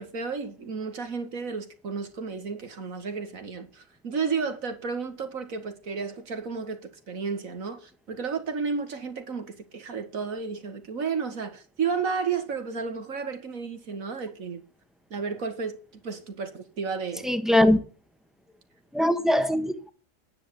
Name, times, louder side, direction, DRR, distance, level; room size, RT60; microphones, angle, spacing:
voice 1, 0.0-14.6 15.1-17.4, right 5 dB, 90° right, 2.3 m, -32 dB
voice 2, 17.2-17.8 18.9-19.9, left 1 dB, ahead, 1.2 m, -21 dB
10.5 x 9.4 x 7.1 m
omnidirectional pair, 1.4 m